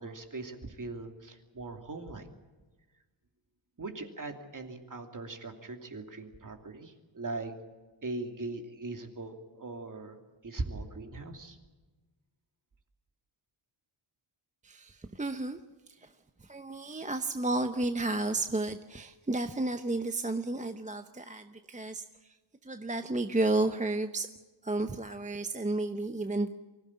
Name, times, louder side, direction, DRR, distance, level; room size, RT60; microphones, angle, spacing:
voice 1, 0.0-2.3 3.8-7.5 8.0-10.2 10.4-11.6, right 3 dB, 40° right, 4 dB, 2.8 m, -40 dB
voice 2, 14.6-15.6 15.9-16.1 16.4-22.4 22.6-24.3 24.6-26.5, right 2 dB, 15° right, 8 dB, 0.8 m, -32 dB
24.5 x 16.5 x 8.6 m, 1.2 s
wide cardioid pair, 135°, 49 cm